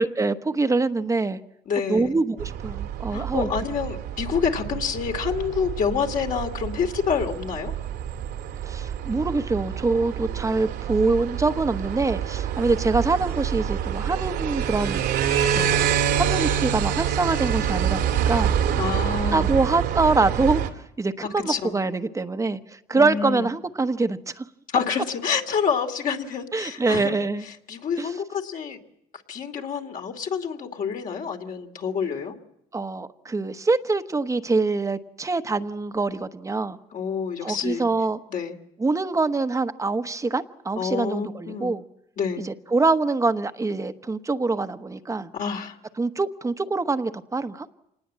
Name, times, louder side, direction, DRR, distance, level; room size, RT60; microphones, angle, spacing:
voice 1, 0.0-1.4 1.9-3.5 8.6-15.0 15.5-15.9 16.1-18.5 19.3-24.4 26.5-27.4 28.0-28.1 32.7-36.8 37.4-38.2 38.8-41.8 42.4-45.3 46.0-47.7, right 3 dB, 20° right, 9 dB, 1.1 m, -24 dB
voice 2, 1.7-2.1 3.1-7.7 18.8-19.5 21.5-21.8 22.9-23.4 24.7-27.2 27.7-28.8 29.3-32.3 36.9-37.9 38.3-38.5 40.8-41.8 42.2-42.5 45.3-45.8, left 6 dB, 55° left, 3 dB, 2.6 m, -27 dB
sound 1, 2.4-20.7, right 9 dB, 80° right, 2.4 m, -27 dB
26.5 x 19.5 x 7.6 m, 0.80 s
cardioid pair, 110°, 17 cm